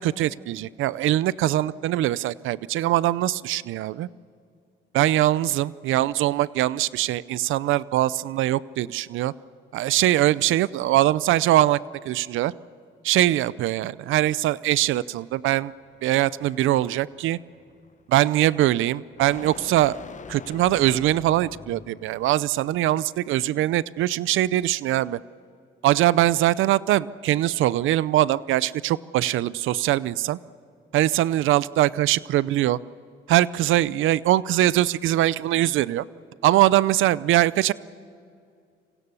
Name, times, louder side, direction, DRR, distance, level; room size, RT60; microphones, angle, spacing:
voice 1, 0.0-4.1 4.9-9.3 9.7-11.8 12.0-12.5 13.0-15.7 16.0-17.4 18.1-20.0 20.3-25.2 25.8-30.4 30.9-32.8 33.3-36.0 36.4-37.7, right 14 dB, 85° right, 19 dB, 0.6 m, -22 dB
sound 1, 15.3-22.3, left 6 dB, 40° left, 1.0 m, -45 dB
27.5 x 26.0 x 7.0 m, 2.4 s
cardioid pair, 90°, 20 cm